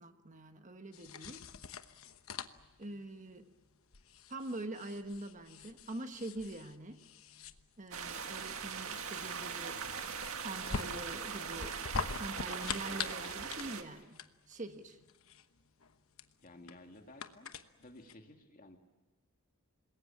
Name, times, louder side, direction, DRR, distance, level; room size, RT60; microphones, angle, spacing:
voice 1, 0.0-1.5 2.8-3.5 4.3-7.0 7.8-9.8 10.4-11.8 12.2-15.0, right 2 dB, 35° right, 7 dB, 1.4 m, -44 dB
sound 1, 0.9-18.1, left 5 dB, 70° left, 1.1 m, -45 dB
sound 2, 7.9-13.8, right 6 dB, 75° right, 1.8 m, -41 dB
Hiss, 8.1-8.3 8.9-14.0, right 1 dB, 5° right, 2.4 m, -57 dB
voice 2, 16.4-17.5 17.8-18.8, left 1 dB, 40° left, 4 dB, 2.4 m, -54 dB
26.5 x 21.5 x 8.7 m, 1.3 s
head